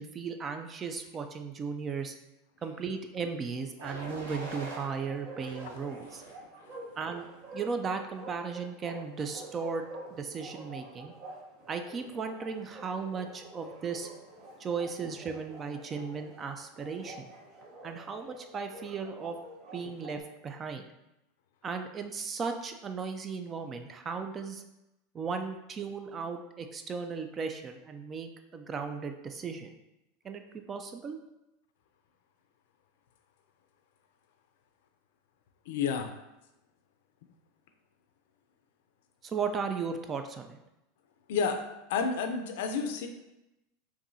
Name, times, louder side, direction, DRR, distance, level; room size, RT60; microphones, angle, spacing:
voice 1, 0.0-2.2 2.6-6.2 7.0-7.3 7.5-9.8 10.1-11.1 11.7-14.1 14.6-17.3 17.8-19.4 19.7-20.8 21.6-24.6 25.1-29.7 30.2-31.2 39.2-40.6, right 5 dB, 30° right, 6 dB, 0.4 m, -36 dB
sound 1, 3.8-4.9 5.4-6.4 7.0-7.4, right 2 dB, 85° right, 0.8 m, -43 dB
Bark, 4.9-20.2, right 2 dB, 55° right, 0.9 m, -47 dB
voice 2, 35.7-36.1 41.3-41.6 41.9-43.1, left 5 dB, 75° left, 6 dB, 0.5 m, -30 dB
4.7 x 2.7 x 2.7 m, 0.92 s
hypercardioid pair, 110°, 0 cm